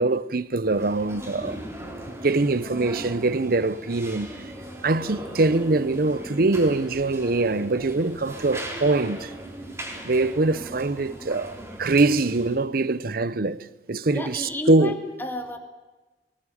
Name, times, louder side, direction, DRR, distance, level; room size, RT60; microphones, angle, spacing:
voice 1, 0.0-1.6 2.2-4.4 4.8-9.3 10.0-15.0, right 2 dB, 55° right, 0.8 m, -23 dB
sound 1, 0.6-12.6, right 1 dB, 15° right, 4.1 m, -38 dB
voice 2, 14.1-15.6, left 1 dB, 10° left, 2.4 m, -32 dB
20.5 x 19.0 x 10.0 m
head